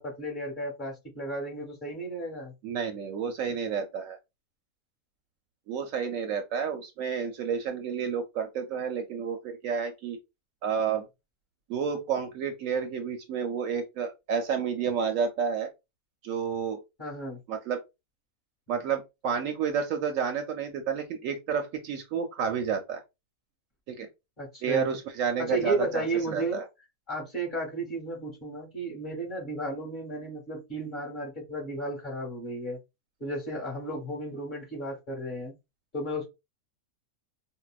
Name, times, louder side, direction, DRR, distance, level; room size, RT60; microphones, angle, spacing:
voice 1, 0.0-2.5 17.0-17.4 24.4-25.0 25.4-26.6 27.1-32.8 33.2-35.5 35.9-36.3, right 1 dB, 35° left, 2.0 m, -33 dB
voice 2, 2.6-4.2 5.7-10.2 10.6-11.1 11.7-15.7 16.2-16.8 17.5-17.8 18.7-23.0 23.9-24.1 24.6-26.6, right 6 dB, 70° right, 0.9 m, -30 dB
4.5 x 2.1 x 2.3 m
omnidirectional pair, 1.5 m